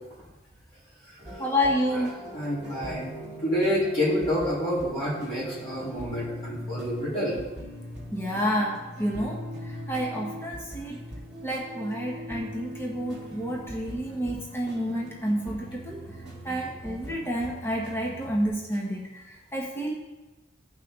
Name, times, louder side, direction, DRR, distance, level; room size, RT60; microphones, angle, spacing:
sound 1, 1.2-18.5, equal, 5° right, 2.4 m, -41 dB
voice 1, 1.4-2.2 8.1-11.0 11.4-16.0 16.4-19.9, equal, 10° left, -2 dB, 1.2 m, -29 dB
voice 2, 2.3-3.1 3.4-7.4, equal, 30° left, -10 dB, 3.7 m, -28 dB
14.0 x 5.8 x 3.8 m, 1.1 s
head